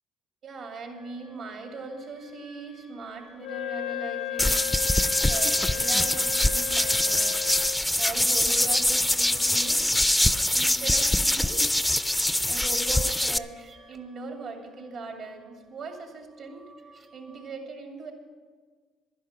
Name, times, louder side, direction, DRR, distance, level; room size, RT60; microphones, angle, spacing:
voice 1, 0.4-4.8 5.2-7.5 8.0-9.9 10.5-11.7 12.5-16.7 17.1-18.1, right 3 dB, 60° right, 2 dB, 2.5 m, -39 dB
sound 1, 0.9-17.5, right 2 dB, 45° right, 1.2 m, -54 dB
Wind instrument woodwind instrument, 3.4-7.9, left 16 dB, 80° left, 0.4 m, -35 dB
sound 2, 4.4-13.4, left 1 dB, 5° left, 0.4 m, -24 dB
11.5 x 11.0 x 5.9 m, 1.5 s
supercardioid pair, 75°, 0 cm